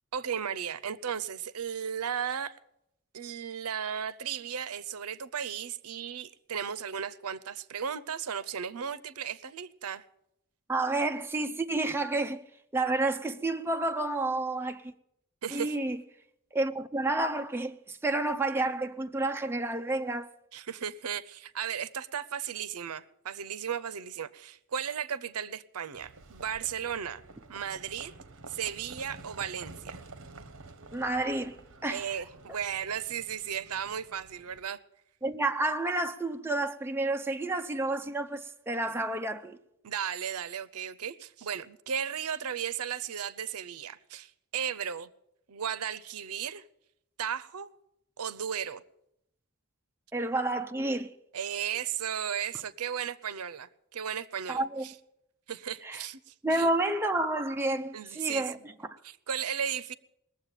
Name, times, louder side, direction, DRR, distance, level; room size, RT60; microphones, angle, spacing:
voice 1, 0.1-2.5 3.1-10.0 15.4-15.7 20.5-27.2 27.5-28.1 28.5-30.0 31.9-34.8 39.8-45.1 45.5-46.6 47.2-47.7 48.2-48.8 51.3-54.9 55.5-56.7 57.9-58.5 59.0-59.9, right 8 dB, 80° right, 0.6 m, -35 dB
voice 2, 10.7-12.4 12.7-14.9 15.5-16.0 16.5-20.3 30.9-31.6 31.8-32.1 35.2-39.6 50.1-51.1 54.5-54.9 55.8-56.1 56.4-58.6, right 2 dB, 10° right, 0.6 m, -30 dB
Livestock farm animals working animals, 25.9-34.6, right 3 dB, 60° right, 1.1 m, -50 dB
20.5 x 7.5 x 9.0 m
head